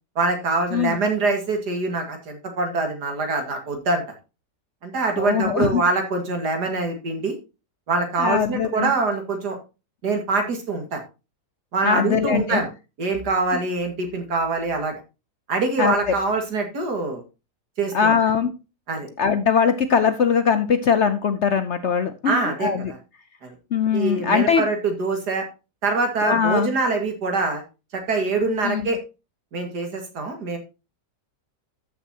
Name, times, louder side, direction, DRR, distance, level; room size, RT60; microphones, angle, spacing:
voice 1, 0.2-4.0 4.8-7.3 7.9-9.6 10.0-11.0 11.7-12.7 13.0-14.9 15.5-17.2 17.8-18.2 18.9-19.1 22.3-23.0 23.4-23.6 23.9-25.5 25.8-27.6 27.9-29.0 29.5-30.6, right 3 dB, 75° right, 5 dB, 2.5 m, -24 dB
voice 2, 5.2-5.8 8.2-8.9 11.8-12.6 15.8-16.0 17.9-18.5 19.2-22.9 23.7-24.7 26.2-26.7 28.6-28.9, left 6 dB, 60° left, 11 dB, 0.8 m, -21 dB
13.5 x 6.2 x 2.8 m, 0.29 s
omnidirectional pair, 1.8 m